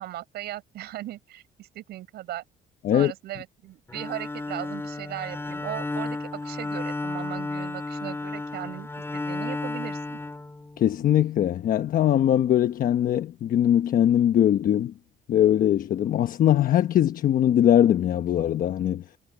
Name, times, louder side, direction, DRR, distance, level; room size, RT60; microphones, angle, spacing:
voice 1, 0.0-2.4 2.9-10.2, right 14 dB, 75° right, 5.9 m, -37 dB
Bowed string instrument, 3.9-11.1, left 2 dB, 15° left, 6.5 m, -33 dB
voice 2, 10.8-14.9 15.3-19.0, left 11 dB, 55° left, 1.1 m, -21 dB
cardioid pair, 110°, 17 cm